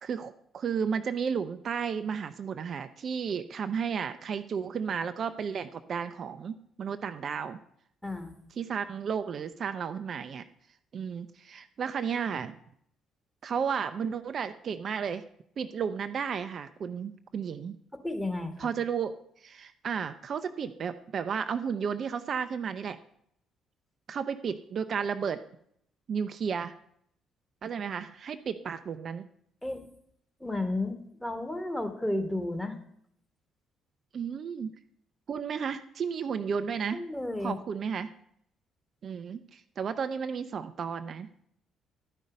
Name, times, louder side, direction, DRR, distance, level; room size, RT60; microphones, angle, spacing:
voice 1, 0.0-7.6 8.6-10.4 10.9-12.6 13.4-15.2 15.6-17.8 18.6-19.1 19.4-23.0 24.1-25.4 26.1-26.7 27.6-29.2 34.1-34.7 35.3-37.0 37.4-38.1 39.0-41.3, right 6 dB, 55° right, 9 dB, 0.5 m, -33 dB
voice 2, 8.0-8.4 18.0-18.7 29.6-29.8 30.4-32.8 36.9-37.6, left 2 dB, 10° left, 6 dB, 1.7 m, -32 dB
11.5 x 5.4 x 5.2 m, 0.69 s
hypercardioid pair, 50°, 0 cm